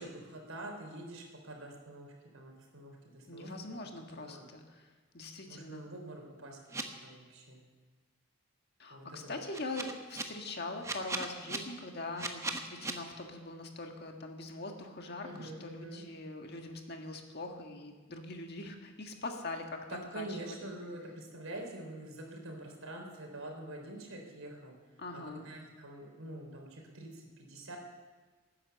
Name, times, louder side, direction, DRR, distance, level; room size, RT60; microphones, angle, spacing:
voice 1, 0.0-3.5 4.1-4.4 5.5-7.6 8.9-9.4 15.2-16.0 19.9-24.8 25.1-27.8, right 1 dB, 80° right, 1 dB, 3.7 m, -46 dB
voice 2, 3.3-4.9 5.1-5.8 8.8-19.8 20.1-20.6 25.0-25.4, left 2 dB, 50° left, 3 dB, 1.7 m, -42 dB
sound 1, 6.7-6.8 9.5-10.2 10.8-11.6 12.2-12.9, right 3 dB, 15° right, 1.0 m, -36 dB
18.0 x 9.9 x 7.0 m, 1.4 s
head